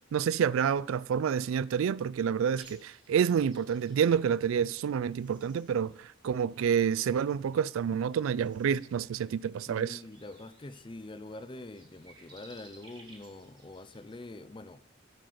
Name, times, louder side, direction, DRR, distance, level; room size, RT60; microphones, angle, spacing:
voice 1, 0.1-10.0, right 7 dB, 85° right, 0.3 m, -28 dB
sound 1, 2.6-14.2, right 2 dB, 20° right, 1.6 m, -60 dB
voice 2, 9.7-14.8, left 2 dB, 25° left, 0.5 m, -45 dB
12.5 x 7.8 x 5.0 m
head